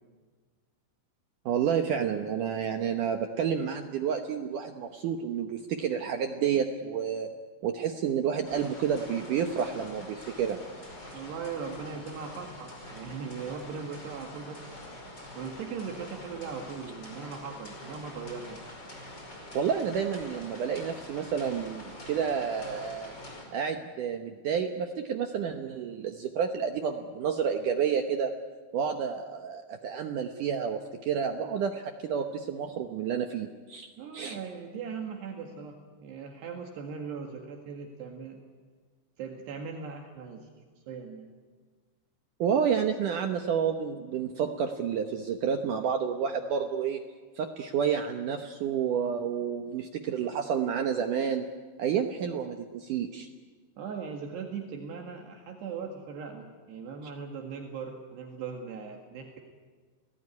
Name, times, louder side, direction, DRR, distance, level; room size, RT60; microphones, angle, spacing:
voice 1, 1.4-7.3 7.6-10.6 11.1-11.2 19.5-23.1 23.5-28.3 28.7-34.4 42.4-47.0 47.3-51.4 51.8-53.3, right 7 dB, 90° right, 5 dB, 1.8 m, -30 dB
sound 1, 8.4-23.4, left 1 dB, 25° left, 5.4 m, -45 dB
voice 2, 11.1-14.7 15.4-18.6 34.0-38.4 39.2-40.5 40.9-41.3 53.8-59.4, right 5 dB, 65° right, 2 dB, 3.7 m, -39 dB
30.0 x 18.5 x 9.7 m, 1.5 s
omnidirectional pair, 5.4 m